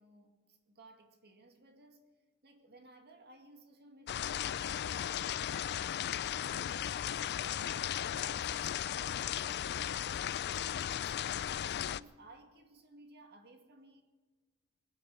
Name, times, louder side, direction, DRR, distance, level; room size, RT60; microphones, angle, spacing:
voice 1, 0.0-2.1 2.4-7.0 7.4-14.0, right 2 dB, 45° right, 2.1 m, -59 dB
sound 1, 4.1-12.0, left 10 dB, 50° left, 0.4 m, -36 dB
22.0 x 9.7 x 6.2 m
head